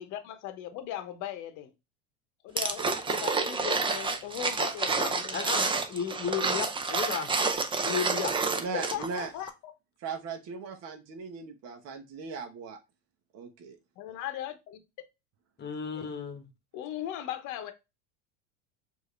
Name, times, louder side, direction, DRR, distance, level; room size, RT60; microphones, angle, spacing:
voice 1, 0.0-1.7 2.4-5.4 8.7-9.5 14.0-14.8 15.9-16.1 16.7-17.7, left 11 dB, 50° left, 0.9 m, -38 dB
sound 1, 2.6-9.2 9.5-9.6, right 4 dB, 15° right, 0.5 m, -29 dB
voice 2, 4.9-7.3 7.8-8.4 15.6-16.5, left 7 dB, 25° left, 1.1 m, -34 dB
voice 3, 8.6-9.3 10.0-12.8 13.3-13.8, right 4 dB, 45° right, 1.0 m, -38 dB
4.7 x 2.7 x 3.1 m
supercardioid pair, 110°, 38 cm